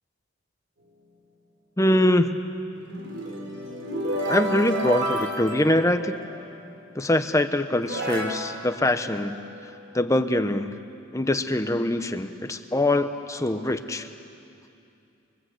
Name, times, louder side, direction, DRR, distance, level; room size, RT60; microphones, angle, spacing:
voice 1, 1.8-2.5 4.3-6.2 6.9-9.4 9.9-10.7 11.1-14.1, left 1 dB, 15° left, 8 dB, 1.0 m, -23 dB
sound 1, 2.7-6.5 7.3-7.4 7.8-9.8, right 1 dB, 60° right, 4.4 m, -31 dB
29.0 x 22.0 x 8.1 m, 2.6 s
head